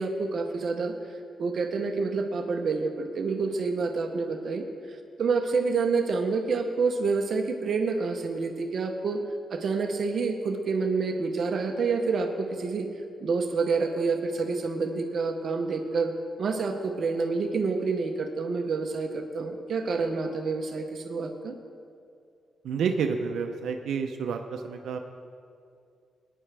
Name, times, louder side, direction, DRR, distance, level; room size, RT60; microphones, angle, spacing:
voice 1, 0.0-9.2 9.5-12.9 13.2-16.1 16.4-21.5, right 4 dB, 50° right, 4 dB, 0.8 m, -28 dB
voice 2, 22.6-25.0, right 6 dB, 80° right, 4 dB, 0.6 m, -29 dB
20.0 x 9.9 x 3.4 m, 2.4 s
wide cardioid pair, 160°, 0 cm